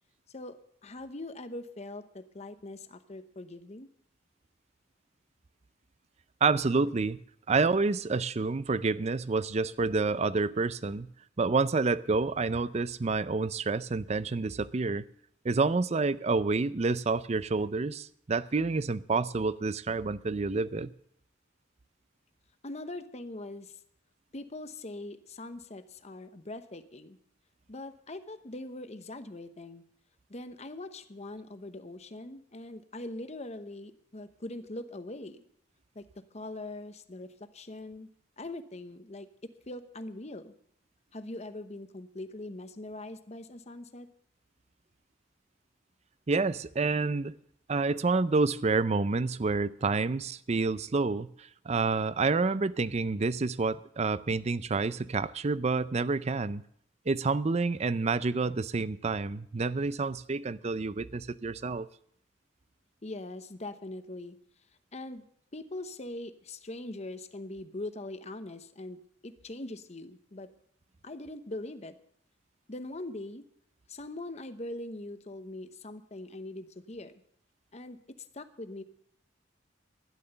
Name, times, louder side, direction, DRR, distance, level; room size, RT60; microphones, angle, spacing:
voice 1, 0.3-3.9 22.6-23.7 24.3-27.2 27.7-29.8 30.3-35.4 35.9-38.1 38.4-40.5 41.1-44.1 63.0-64.4 64.9-65.2 65.5-70.5 71.0-71.9 72.7-73.4 73.9-77.1 77.7-78.8, left 2 dB, 35° left, 0.9 m, -42 dB
voice 2, 6.4-7.2 7.5-11.1 11.4-15.0 15.4-20.9 46.3-47.4 47.7-56.6 57.1-61.9, right 3 dB, 35° right, 0.5 m, -28 dB
12.5 x 11.0 x 6.7 m
head